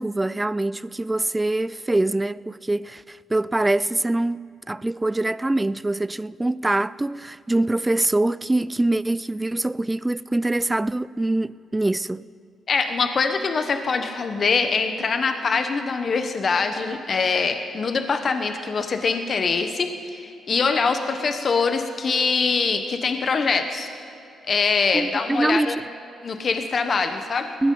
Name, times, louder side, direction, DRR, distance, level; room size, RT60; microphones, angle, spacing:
voice 1, 0.0-12.3 24.9-25.8 27.6-27.7, right 2 dB, 15° right, 0.3 m, -24 dB
voice 2, 12.7-23.9 24.5-25.8 26.2-27.5, left 4 dB, 50° left, 1.1 m, -23 dB
20.0 x 15.5 x 3.9 m
cardioid pair, 65°, 0 cm